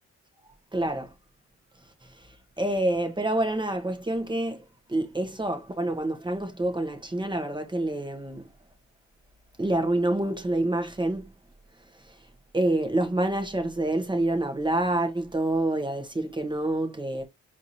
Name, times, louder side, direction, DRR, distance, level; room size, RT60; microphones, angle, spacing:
voice 1, 0.7-1.1 2.2-2.3 2.6-4.6 4.9-8.5 9.6-11.3 12.1-12.2 12.5-17.2, right 1 dB, 15° right, 1.0 m, -27 dB
4.6 x 2.7 x 2.9 m
cardioid pair, 90°, 30 cm